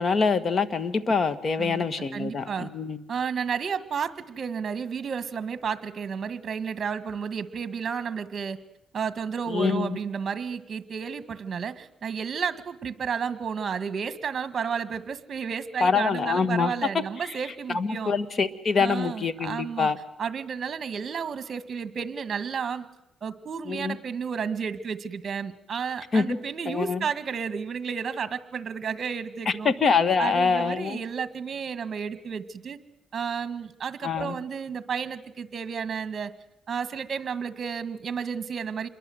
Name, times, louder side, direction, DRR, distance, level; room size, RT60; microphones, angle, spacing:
voice 1, 0.0-3.0 9.5-10.0 15.8-16.7 17.7-20.0 23.7-24.0 26.1-26.4 26.7-27.1 29.7-31.0 34.0-34.4, left 5 dB, 45° left, 13 dB, 1.7 m, -25 dB
voice 2, 2.1-2.7 3.1-8.6 8.9-18.1 18.8-19.9 20.2-22.9 23.2-29.7 30.2-32.8 33.1-36.3 36.7-38.9, right 6 dB, 45° right, 12 dB, 1.8 m, -32 dB
28.0 x 22.5 x 8.0 m, 0.82 s
cardioid pair, 90°, 0 cm